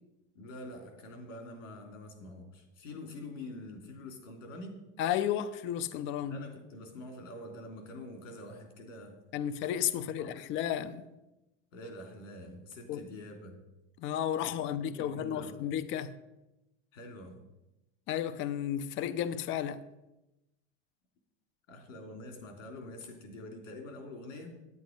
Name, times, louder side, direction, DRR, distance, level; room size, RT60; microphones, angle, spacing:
voice 1, 0.3-4.8 6.2-9.2 10.1-10.4 11.7-13.6 14.5-15.6 16.9-17.4 21.7-24.5, left 1 dB, 85° left, 3.2 m, -46 dB
voice 2, 5.0-6.4 9.3-11.1 12.9-13.0 14.0-16.1 18.1-19.8, left 10 dB, 30° left, 0.6 m, -33 dB
9.6 x 9.0 x 5.2 m
supercardioid pair, 130°, 38 cm